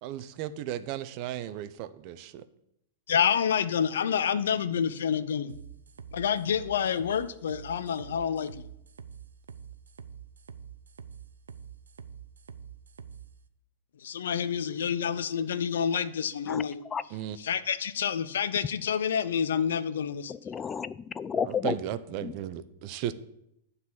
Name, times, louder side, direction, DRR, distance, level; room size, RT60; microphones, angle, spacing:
voice 1, 0.0-2.4 17.1-17.4 21.4-23.1, right 11 dB, 50° right, 13 dB, 0.6 m, -35 dB
voice 2, 3.1-5.6 6.1-8.5 14.0-16.8 17.4-20.3, left 7 dB, 75° left, 14 dB, 0.6 m, -28 dB
sound 1, 5.5-13.3, right 7 dB, 85° right, 0.6 m, -46 dB
voice 3, 20.3-21.8 22.2-22.3, left 7 dB, 20° left, 18 dB, 0.4 m, -31 dB
9.4 x 4.1 x 7.1 m, 0.78 s
hypercardioid pair, 110°, 0 cm